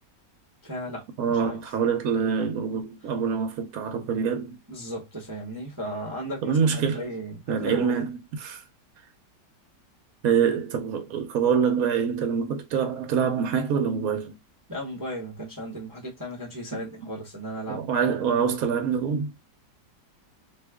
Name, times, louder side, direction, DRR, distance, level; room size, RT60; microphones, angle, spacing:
voice 1, 0.6-1.6 4.7-8.1 14.7-18.2, right 1 dB, 20° right, 0.6 m, -35 dB
voice 2, 1.2-4.6 6.4-7.0 7.5-8.6 10.2-14.3 16.7-17.1 17.7-19.3, right 6 dB, 65° right, 1.0 m, -25 dB
2.8 x 2.4 x 3.4 m
omnidirectional pair, 1.9 m